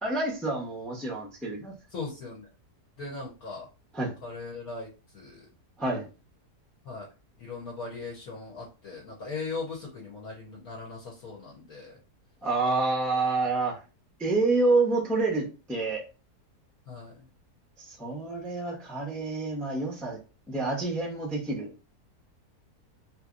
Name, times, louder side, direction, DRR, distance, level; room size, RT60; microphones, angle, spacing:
voice 1, 0.0-1.7 3.9-4.1 5.8-6.1 12.4-13.8 14.2-16.0 17.8-20.2 20.5-21.7, right 3 dB, ahead, -2 dB, 0.4 m, -28 dB
voice 2, 1.9-2.5 3.0-3.7 4.2-4.9 5.1-5.4 6.8-7.1 7.4-12.0 16.9-17.2, left 4 dB, 65° left, -3 dB, 1.4 m, -39 dB
3.2 x 3.0 x 2.5 m, 0.31 s
omnidirectional pair, 1.7 m